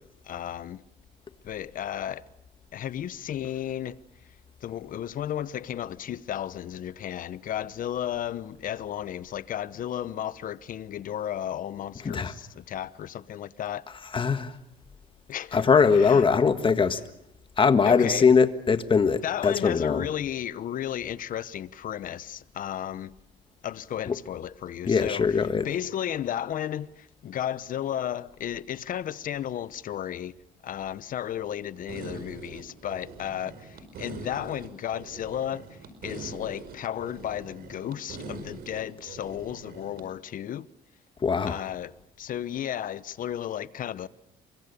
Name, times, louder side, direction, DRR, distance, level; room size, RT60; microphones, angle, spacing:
voice 1, 0.2-0.8 1.4-2.2 2.7-4.0 4.6-13.9 15.3-15.6 15.9-16.3 17.9-18.3 19.2-23.1 23.6-25.4 25.6-30.4 30.6-40.7 41.5-44.1, left 10 dB, 55° left, 1.0 m, -34 dB
voice 2, 14.1-14.5 15.5-17.0 17.6-20.1 24.1-24.2 24.8-25.7 41.2-41.6, left 5 dB, 30° left, 1.6 m, -21 dB
sound 1, 31.9-40.1, right 4 dB, 65° right, 4.9 m, -43 dB
28.5 x 24.0 x 6.9 m
cardioid pair, 110°, 17 cm